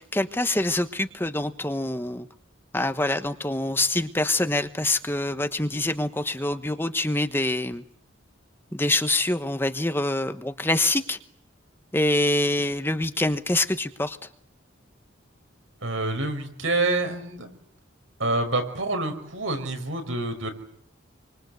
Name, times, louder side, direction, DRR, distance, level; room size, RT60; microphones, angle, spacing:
voice 1, 0.0-2.3 2.7-7.8 8.7-11.2 11.9-14.2, left 2 dB, 10° left, 9 dB, 1.1 m, -25 dB
voice 2, 15.8-17.5 18.2-20.5, right 2 dB, 85° right, 5 dB, 5.7 m, -27 dB
28.0 x 25.0 x 8.1 m, 0.69 s
head